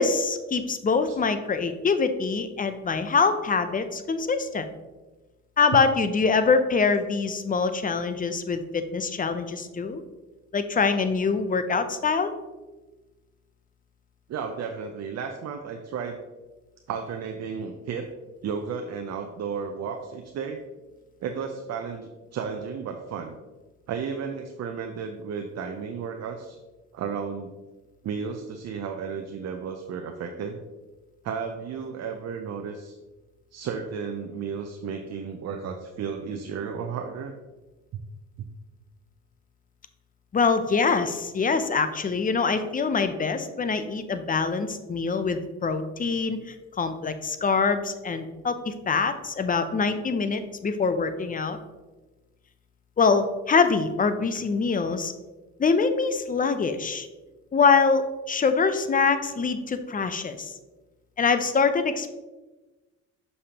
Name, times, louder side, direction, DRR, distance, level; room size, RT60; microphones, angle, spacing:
voice 1, 0.0-4.7 5.6-10.0 10.5-12.3 40.3-51.6 53.0-55.1 55.6-57.1 57.5-60.5 61.2-62.1, left 5 dB, 25° left, 10 dB, 0.6 m, -24 dB
voice 2, 14.3-16.2 16.9-18.1 18.4-20.6 21.2-23.4 23.9-26.6 26.9-27.5 28.0-30.6 31.2-33.0 33.5-37.3, right 6 dB, 60° right, 4 dB, 0.6 m, -33 dB
6.5 x 5.4 x 2.9 m, 1.2 s
cardioid pair, 90°, 30 cm